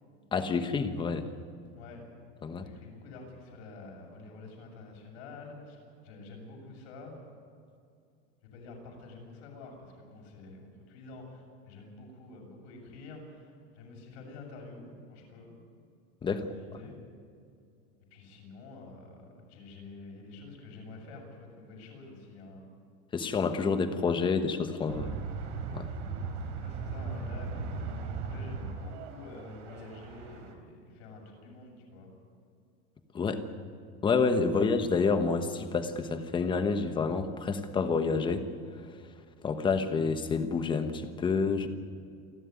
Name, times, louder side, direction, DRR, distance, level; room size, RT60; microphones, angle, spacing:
voice 1, 0.3-1.3 2.4-2.7 16.2-16.4 23.1-25.2 25.7-25.9 33.1-33.4 34.0-38.5 39.4-41.7, left 4 dB, 15° left, 9 dB, 1.1 m, -28 dB
voice 2, 2.6-7.2 8.5-15.5 16.3-17.0 18.1-22.6 26.6-32.1 33.5-33.7 34.5-34.6, left 3 dB, 65° left, 1 dB, 7.7 m, -48 dB
sound 1, 24.9-30.5, right 4 dB, 90° right, 3.8 m, -38 dB
28.5 x 12.0 x 9.7 m, 2.4 s
supercardioid pair, 175°, 34 cm